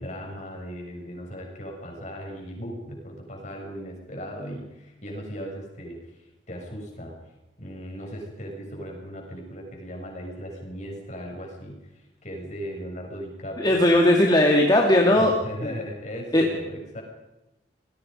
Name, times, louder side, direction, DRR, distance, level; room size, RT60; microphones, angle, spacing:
voice 1, 0.0-7.1 7.6-13.8 15.0-17.0, equal, 40° left, 1 dB, 6.8 m, -37 dB
voice 2, 13.6-15.3 15.6-15.7 16.3-16.4, left 1 dB, 25° left, 1 dB, 2.2 m, -18 dB
27.5 x 20.5 x 5.4 m, 1.0 s
head